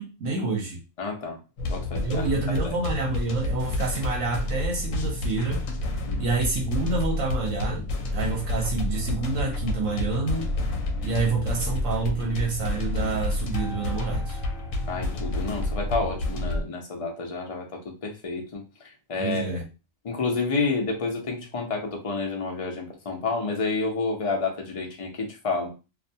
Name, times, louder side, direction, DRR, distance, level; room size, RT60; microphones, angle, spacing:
voice 1, 0.0-0.8 1.9-5.6 6.2-10.5 11.0-14.4 19.2-19.7, right 4 dB, 75° right, 1.0 m, -28 dB
voice 2, 1.0-1.4 1.7-2.3 2.6-2.7 6.1-6.2 14.9-18.6 19.1-19.6 20.0-25.8, left 3 dB, 45° left, 0.4 m, -29 dB
sound 1, 1.6-16.6, left 2 dB, 75° left, 0.9 m, -29 dB
2.5 x 2.1 x 2.6 m
omnidirectional pair, 1.4 m